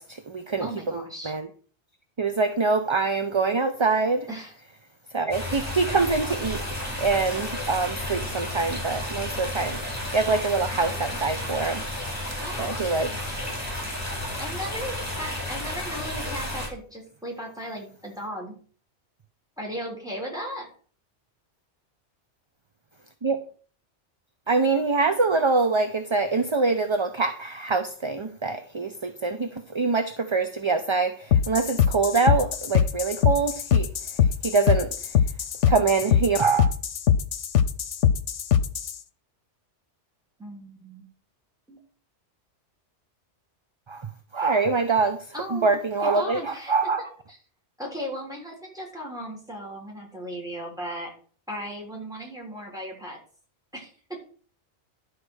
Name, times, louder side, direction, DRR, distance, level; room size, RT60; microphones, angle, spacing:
voice 1, 0.0-0.7 0.9-1.5 2.2-4.3 5.1-6.6 7.0-9.8 10.1-11.8 12.6-13.1 23.2-23.4 24.5-33.9 34.4-35.1 35.7-36.7 43.9-44.1 44.3-45.3 45.5-47.0, right 4 dB, 30° right, 7 dB, 0.6 m, -24 dB
voice 2, 0.6-1.3 4.3-4.6 12.4-12.9 14.4-18.5 19.6-20.7 40.4-41.0 41.7-41.8 45.3-46.7 47.8-51.1 51.5-53.2 53.7-54.2, equal, 5° right, 0 dB, 3.3 m, -36 dB
sound 1, 5.3-16.7, left 1 dB, 15° left, 4.4 m, -32 dB
sound 2, 31.3-39.0, left 8 dB, 80° left, 1.0 m, -22 dB
11.5 x 4.7 x 6.3 m, 0.43 s
omnidirectional pair, 1.2 m